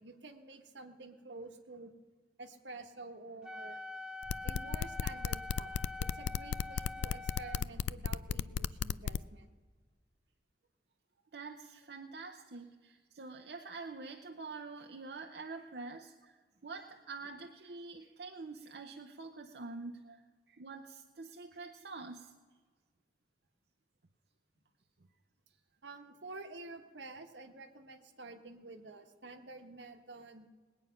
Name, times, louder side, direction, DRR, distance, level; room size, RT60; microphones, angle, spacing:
voice 1, 0.0-1.9 2.4-3.8 4.4-5.7 6.0-9.5 20.1-20.2 25.8-30.5, right 3 dB, 85° right, 6 dB, 1.2 m, -49 dB
Wind instrument woodwind instrument, 3.4-7.7, left 2 dB, 5° right, 0.4 m, -45 dB
sound 1, 4.2-9.2, left 7 dB, 80° left, 0.3 m, -34 dB
voice 2, 11.3-20.2 20.5-22.3, right 3 dB, 70° right, 3 dB, 0.7 m, -46 dB
19.5 x 8.9 x 5.7 m, 1.5 s
head